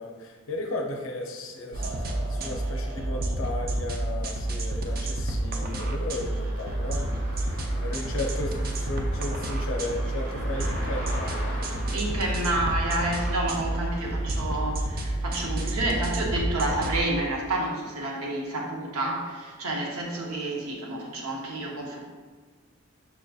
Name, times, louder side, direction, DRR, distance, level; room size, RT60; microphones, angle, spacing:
voice 1, 0.0-12.2, left 2 dB, 65° left, 1 dB, 0.5 m, -35 dB
sound 1, 1.7-17.0, right 1 dB, 40° right, 0.3 m, -29 dB
sound 2, 2.4-15.2, equal, 70° right, 1.3 m, -43 dB
voice 2, 11.9-22.0, right 1 dB, 90° right, -1 dB, 0.7 m, -29 dB
5.5 x 2.6 x 2.3 m, 1.4 s
head